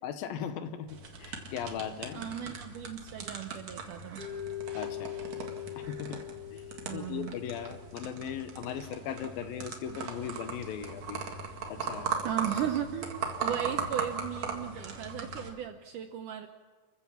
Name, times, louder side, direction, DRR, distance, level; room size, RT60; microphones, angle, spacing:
voice 1, 0.0-2.2 4.7-5.2 5.8-6.2 6.5-6.6 6.9-11.2 11.7-12.1, left 8 dB, 70° left, 9 dB, 2.7 m, -38 dB
sound 1, 0.9-15.5, right 5 dB, 50° right, 2.8 m, -39 dB
voice 2, 2.1-4.3 6.9-7.3 12.2-16.5, right 10 dB, 75° right, 7 dB, 1.9 m, -36 dB
Mallet percussion, 4.2-8.3, left 12 dB, 30° left, 3.0 m, -41 dB
29.5 x 15.0 x 7.1 m, 1.4 s
omnidirectional pair, 4.6 m